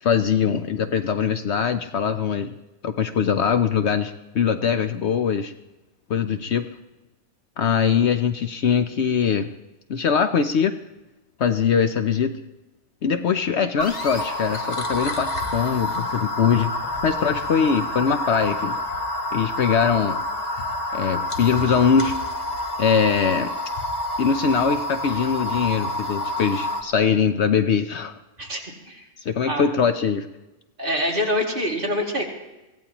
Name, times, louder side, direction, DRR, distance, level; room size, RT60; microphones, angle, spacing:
voice 1, 0.0-2.5 2.8-5.5 6.1-6.7 7.6-9.5 9.9-10.7 11.4-12.4 13.0-16.7 17.0-18.7 19.3-20.2 20.9-22.2 22.8-23.5 24.2-28.1 29.2-30.3, left 7 dB, 60° left, 9 dB, 0.9 m, -22 dB
sound 1, 13.8-26.8, left 1 dB, 35° left, 1.2 m, -28 dB
voice 2, 28.4-29.1 29.5-29.7 30.8-32.2, equal, 40° right, -1 dB, 2.5 m, -25 dB
23.5 x 16.0 x 2.9 m, 1.0 s
omnidirectional pair, 1.4 m